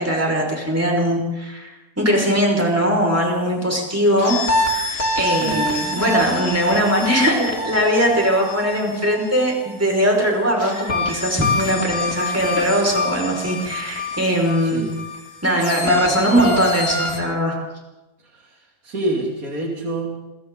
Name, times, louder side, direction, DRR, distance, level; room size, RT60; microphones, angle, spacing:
voice 1, 0.0-4.4 4.8-14.9 15.4-17.6, equal, 10° right, -1 dB, 5.6 m, -20 dB
sound 1, 4.2-9.8 10.6-17.2, left 2 dB, 40° left, 3.4 m, -26 dB
voice 2, 18.8-20.2, right 2 dB, 60° right, 0 dB, 3.3 m, -27 dB
28.0 x 23.5 x 4.0 m, 1.0 s
omnidirectional pair, 1.7 m